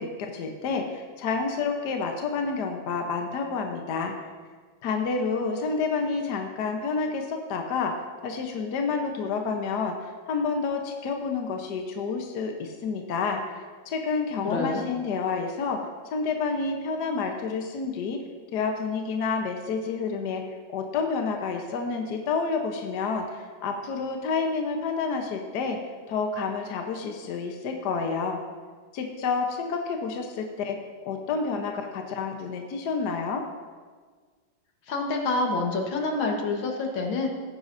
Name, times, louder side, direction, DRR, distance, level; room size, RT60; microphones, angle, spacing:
voice 1, 0.0-4.1 4.8-7.9 8.2-15.8 16.1-18.2 18.5-20.4 20.7-25.8 26.1-28.4 28.9-30.8 31.0-33.4, left 4 dB, 60° left, 3 dB, 1.4 m, -29 dB
voice 2, 14.4-14.9 34.9-37.3, left 3 dB, 75° left, 2 dB, 2.0 m, -27 dB
18.0 x 9.4 x 2.6 m, 1.5 s
omnidirectional pair, 2.2 m